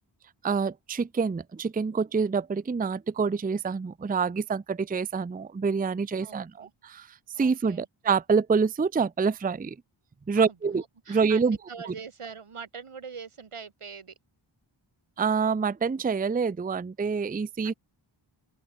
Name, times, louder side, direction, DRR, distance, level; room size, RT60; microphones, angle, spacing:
voice 1, 0.4-7.1 7.4-9.8 10.3-10.8 11.1-11.6 11.9-12.0 15.2-17.7, right 5 dB, 20° right, 0.4 m, -26 dB
voice 2, 6.2-6.7 7.3-7.9 10.3-14.1 17.6-17.8, right 6 dB, 90° right, 2.5 m, -43 dB
open air
wide cardioid pair, 50°, 49 cm